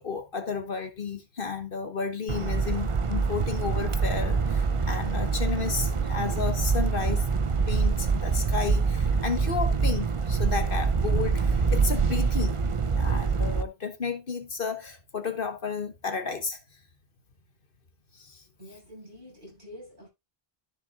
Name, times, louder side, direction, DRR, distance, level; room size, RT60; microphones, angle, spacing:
voice 1, 0.0-7.2 7.7-12.5 13.0-16.6 18.1-18.4, left 5 dB, 60° left, 1.5 m, -32 dB
sound 1, 2.3-13.6, right 5 dB, 35° right, 0.7 m, -25 dB
voice 2, 18.6-20.1, equal, 50° right, 7.1 m, -47 dB
13.5 x 6.8 x 2.4 m
omnidirectional pair, 1.1 m